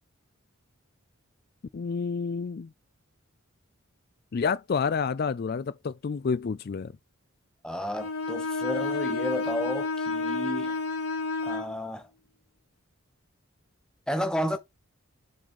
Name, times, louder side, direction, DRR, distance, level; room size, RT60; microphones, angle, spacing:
voice 1, 1.7-2.7 4.3-6.9, left 5 dB, 45° left, 0.3 m, -29 dB
voice 2, 7.6-10.8 11.4-12.1 14.1-14.6, left 1 dB, 5° left, 1.0 m, -32 dB
Bowed string instrument, 8.0-11.7, left 3 dB, 85° left, 1.7 m, -30 dB
7.6 x 3.8 x 5.3 m
head